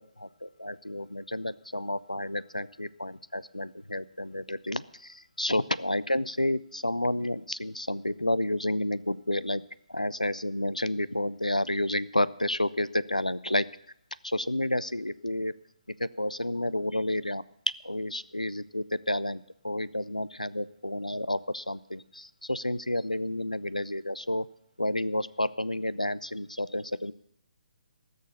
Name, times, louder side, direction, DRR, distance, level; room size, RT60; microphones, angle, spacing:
voice 1, 0.2-9.6 9.9-13.7 14.2-15.5 16.0-17.4 17.8-24.5 24.8-27.1, left 1 dB, 90° left, 17 dB, 0.5 m, -30 dB
17.5 x 6.6 x 6.9 m, 0.74 s
figure-of-eight pair, 135°, 4 cm